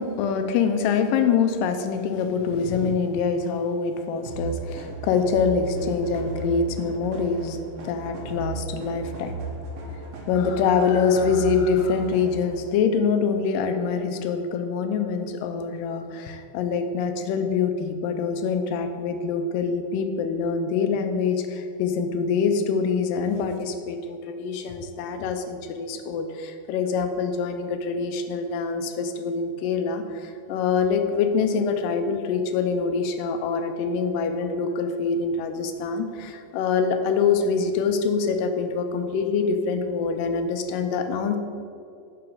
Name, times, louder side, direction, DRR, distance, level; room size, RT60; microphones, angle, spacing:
voice 1, 0.0-9.3 10.3-41.4, left 5 dB, 85° left, 7 dB, 2.2 m, -25 dB
sound 1, 4.3-12.7, right 3 dB, 65° right, 1.5 m, -35 dB
5.8 x 4.6 x 6.2 m, 2.5 s
omnidirectional pair, 3.9 m